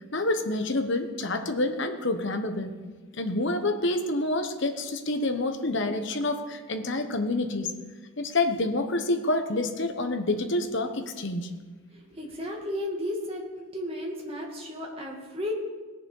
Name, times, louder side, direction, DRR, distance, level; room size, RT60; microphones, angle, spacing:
voice 1, 0.1-2.8 3.1-7.7 8.2-11.5, left 2 dB, 55° left, 7 dB, 1.1 m, -28 dB
voice 2, 11.9-13.4 13.7-15.5, left 1 dB, 25° right, -1 dB, 2.1 m, -34 dB
18.0 x 6.8 x 5.5 m, 1.4 s
head